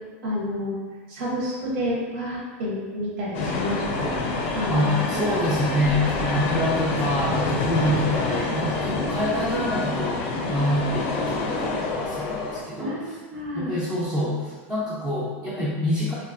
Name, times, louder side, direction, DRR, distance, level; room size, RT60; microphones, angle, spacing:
voice 1, 0.2-0.8 1.1-4.1 4.5-4.8 5.2-5.4 8.9-9.0 12.8-13.7, left 1 dB, 70° right, -5 dB, 0.8 m, -29 dB
sound 1, 3.3-12.6, left 3 dB, 55° left, 0.4 m, -27 dB
voice 2, 4.7-13.2 13.5-16.1, left 1 dB, 10° right, -10 dB, 0.4 m, -26 dB
2.7 x 2.3 x 2.4 m, 1.4 s
supercardioid pair, 150°, 7 cm